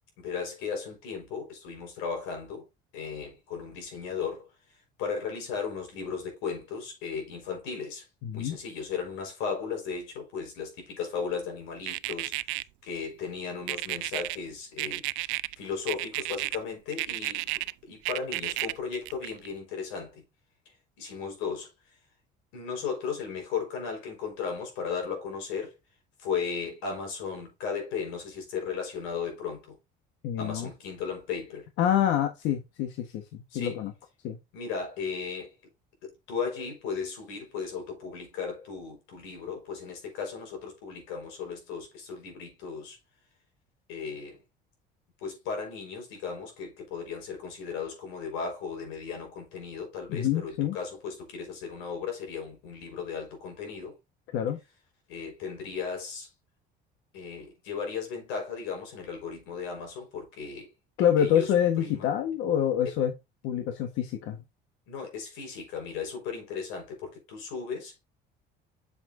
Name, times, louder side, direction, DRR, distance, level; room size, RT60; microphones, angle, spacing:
voice 1, 0.2-2.7 2.9-8.1 8.3-20.2 20.6-22.0 22.5-25.8 26.2-29.8 30.4-31.7 33.5-33.8 34.5-35.6 36.0-43.0 43.9-44.4 45.2-54.0 55.1-56.3 57.1-60.7 61.2-62.1 62.8-62.9 64.9-68.0, left 6 dB, 90° left, 4.6 m, -36 dB
voice 2, 8.2-8.6 30.2-30.7 31.8-33.9 34.2-34.4 50.1-50.8 54.3-54.6 61.0-63.1 63.4-64.4, left 10 dB, 70° left, 1.3 m, -26 dB
sound 1, 11.9-12.6 13.7-14.4 14.8-15.5 15.9-16.6 16.9-17.7 18.0-19.5, right 22 dB, 85° right, 0.5 m, -31 dB
8.3 x 7.2 x 2.6 m
cardioid pair, 150°, 20 cm